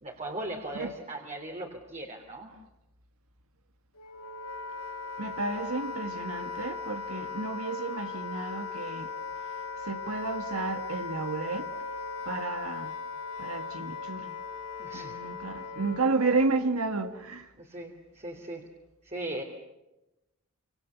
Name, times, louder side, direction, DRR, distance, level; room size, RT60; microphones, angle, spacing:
voice 1, 0.0-2.5 14.8-15.2 17.6-18.6 19.0-19.4, right 1 dB, 30° right, 3.1 m, -38 dB
Wind instrument woodwind instrument, 4.0-16.6, left 5 dB, 90° left, 3.4 m, -38 dB
voice 2, 5.2-9.1 9.8-11.7 12.2-13.0 13.4-14.3 14.9-17.5, right 3 dB, 80° right, 1.6 m, -31 dB
29.0 x 27.0 x 7.0 m
head